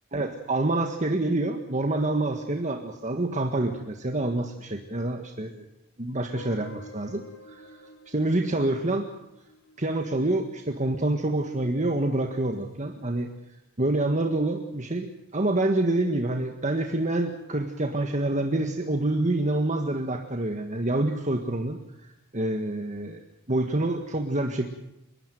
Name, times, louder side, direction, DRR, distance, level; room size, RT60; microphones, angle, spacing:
voice 1, 0.1-5.6 6.0-9.1 9.8-13.3 13.8-21.8 22.3-23.2 23.5-24.6, right 2 dB, 35° right, 4 dB, 1.7 m, -27 dB
Guitar, 6.3-11.2, left 2 dB, 65° left, 4.6 m, -49 dB
30.0 x 13.0 x 9.4 m, 0.86 s
head